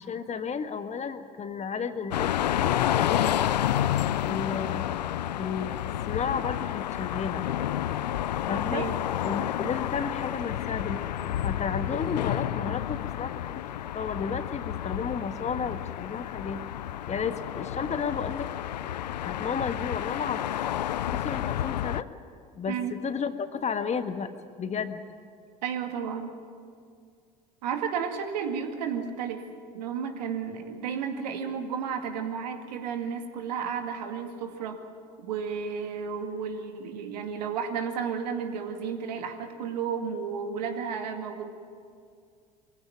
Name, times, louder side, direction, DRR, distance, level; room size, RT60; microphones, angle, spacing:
voice 1, 0.0-3.4 4.2-4.8 5.4-5.8 6.1-7.5 8.5-8.9 9.2-13.5 13.9-16.6 17.1-18.5 18.8-19.0 19.2-20.4 21.1-22.1 22.5-24.3 24.6-25.0, left 6 dB, 35° left, 9 dB, 1.6 m, -33 dB
sound 1, 2.1-22.0, left 12 dB, 85° left, 0.5 m, -30 dB
voice 2, 25.6-26.3 27.6-29.4 29.7-34.8 35.2-41.5, right 7 dB, 80° right, 5 dB, 2.1 m, -32 dB
23.0 x 16.0 x 9.2 m, 2.2 s
hypercardioid pair, 70°, 21 cm